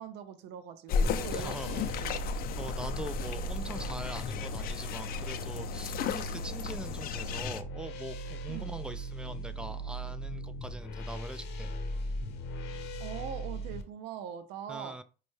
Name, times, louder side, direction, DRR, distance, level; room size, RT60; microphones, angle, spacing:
voice 1, 0.0-2.3 8.5-8.7 13.0-15.0, right 8 dB, 90° right, 0.5 m, -42 dB
sound 1, 0.9-7.6, left 6 dB, 60° left, 0.4 m, -34 dB
sound 2, 1.0-13.8, right 1 dB, 85° left, 0.8 m, -39 dB
voice 2, 1.3-1.8 2.2-11.7 14.7-15.0, right 1 dB, 5° right, 0.3 m, -43 dB
5.2 x 2.2 x 3.1 m
cardioid pair, 110°, 17 cm